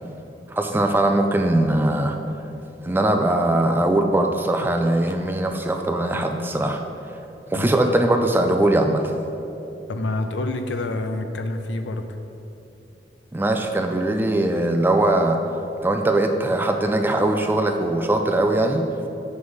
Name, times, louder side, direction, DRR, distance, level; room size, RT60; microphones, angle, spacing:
voice 1, 0.5-2.2 2.8-6.8 7.5-9.1 13.3-15.4 15.8-18.9, right 1 dB, 10° right, 5 dB, 0.3 m, -21 dB
voice 2, 9.9-12.1, left 2 dB, 85° left, 7 dB, 0.5 m, -27 dB
7.8 x 5.4 x 3.2 m, 2.8 s
head